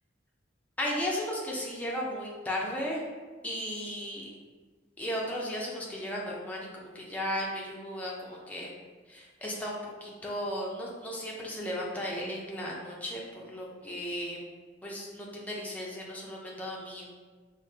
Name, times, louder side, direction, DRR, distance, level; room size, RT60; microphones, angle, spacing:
voice 1, 0.8-3.0 3.4-4.3 5.0-8.7 9.1-14.4 14.8-17.1, equal, 10° left, -4 dB, 0.5 m, -35 dB
4.9 x 2.1 x 2.7 m, 1.4 s
head